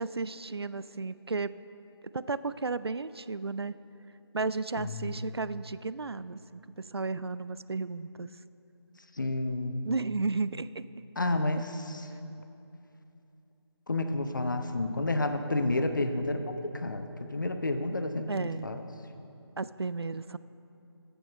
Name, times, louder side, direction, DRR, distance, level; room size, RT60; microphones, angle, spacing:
voice 1, 0.0-1.5 2.1-3.8 4.3-8.3 9.8-10.8 18.3-18.7 19.6-20.4, right 3 dB, 65° right, 16 dB, 0.4 m, -33 dB
voice 2, 4.8-5.4 9.1-9.9 11.2-12.1 13.9-17.1 17.3-18.8, left 2 dB, 45° left, 7 dB, 0.8 m, -30 dB
14.0 x 7.6 x 5.6 m, 2.7 s
figure-of-eight pair, 160°, 14 cm